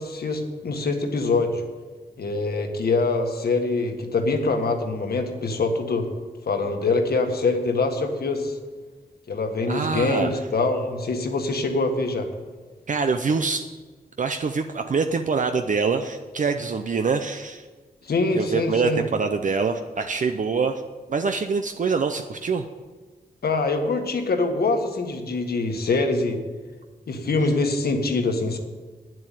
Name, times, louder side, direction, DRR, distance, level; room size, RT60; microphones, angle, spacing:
voice 1, 0.0-1.6 2.2-6.1 6.5-8.6 9.3-12.3 18.0-19.0 23.4-26.4 27.1-28.6, left 3 dB, 75° left, 5 dB, 1.5 m, -24 dB
voice 2, 9.7-10.4 12.9-13.7 14.2-17.7 18.3-20.8 21.1-22.7, right 5 dB, 50° right, 7 dB, 0.6 m, -25 dB
9.8 x 7.8 x 9.2 m, 1.4 s
wide cardioid pair, 110°, 16 cm